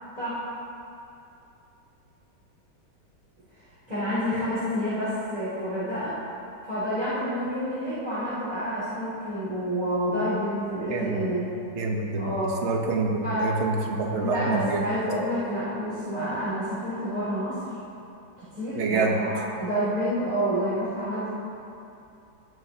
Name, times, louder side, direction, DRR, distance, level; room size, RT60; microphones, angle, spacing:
voice 1, 3.9-6.1 6.6-11.4 12.2-12.6 13.2-13.5 14.2-17.7 18.4-21.3, equal, 20° right, -12 dB, 2.6 m, -28 dB
voice 2, 10.9-11.3 11.7-12.4 12.6-14.9 18.8-19.2, right 3 dB, 45° right, 1 dB, 1.0 m, -26 dB
17.5 x 6.9 x 2.8 m, 2.7 s
omnidirectional pair, 2.0 m